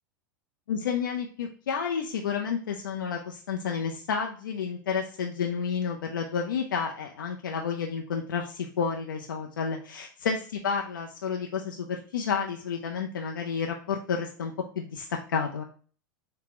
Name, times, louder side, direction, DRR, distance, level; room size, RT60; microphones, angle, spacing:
voice 1, 0.7-15.6, left 6 dB, 80° left, 2 dB, 0.5 m, -31 dB
4.2 x 2.2 x 4.1 m, 0.41 s
hypercardioid pair, 95°, 11 cm